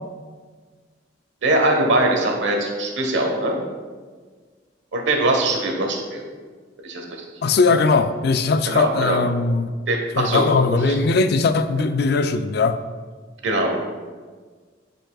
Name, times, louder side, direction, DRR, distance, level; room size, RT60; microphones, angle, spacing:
voice 1, 1.4-3.6 4.9-6.2 6.8-7.3 7.7-7.8 8.7-9.2 9.9-10.5 10.7-11.0 13.4-13.8, right 2 dB, 85° right, 2 dB, 1.1 m, -22 dB
voice 2, 7.4-9.7 10.2-12.8, left 4 dB, 60° left, 10 dB, 0.4 m, -19 dB
9.8 x 5.1 x 2.3 m, 1.5 s
head